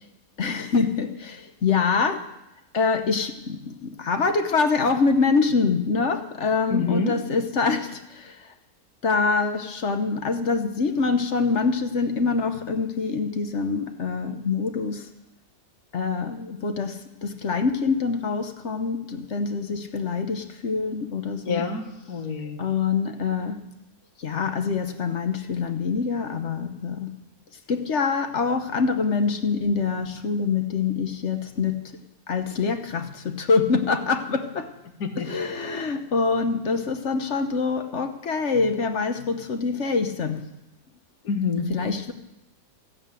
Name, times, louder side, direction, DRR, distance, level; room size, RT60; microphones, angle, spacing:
voice 1, 0.4-2.2 2.7-8.4 9.0-15.1 15.9-21.6 22.6-23.6 24.2-27.1 27.7-31.8 32.3-34.7 35.3-40.4 41.6-42.1, left 4 dB, 50° left, 7 dB, 1.2 m, -25 dB
voice 2, 6.7-7.2 21.4-22.6 35.0-35.3 41.2-41.7, left 4 dB, 75° left, 4 dB, 2.0 m, -27 dB
15.0 x 9.3 x 9.0 m, 0.92 s
omnidirectional pair, 1.6 m